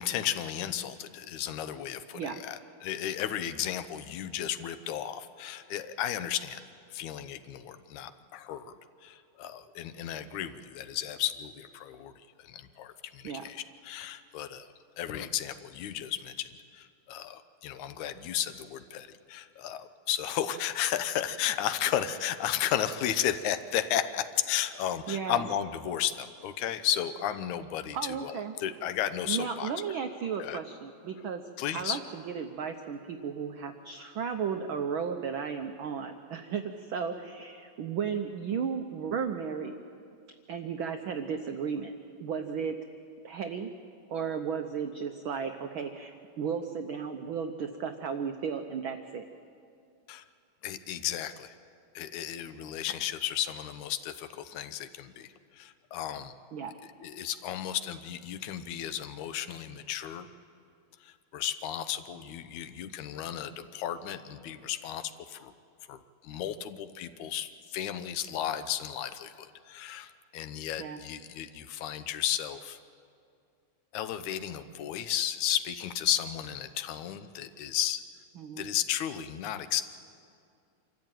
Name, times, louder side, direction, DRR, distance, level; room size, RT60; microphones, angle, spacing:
voice 1, 0.0-6.6 6.9-8.7 9.0-12.1 12.4-14.7 15.0-29.7 30.4-30.6 31.6-32.0 50.1-50.2 50.6-51.6 51.9-55.3 55.5-56.3 57.0-60.3 61.0-65.5 65.9-72.8 73.9-78.0 78.6-79.8, left 11 dB, 85° left, 11 dB, 2.3 m, -34 dB
voice 2, 25.1-25.4 27.9-28.5 29.3-31.4 31.7-39.7 40.5-41.9 42.2-42.8 43.2-43.7 44.1-49.2 56.5-56.7 70.8-71.0 78.4-78.7, right 6 dB, 80° right, 6 dB, 1.1 m, -34 dB
26.0 x 14.0 x 9.0 m, 2.5 s
omnidirectional pair, 3.3 m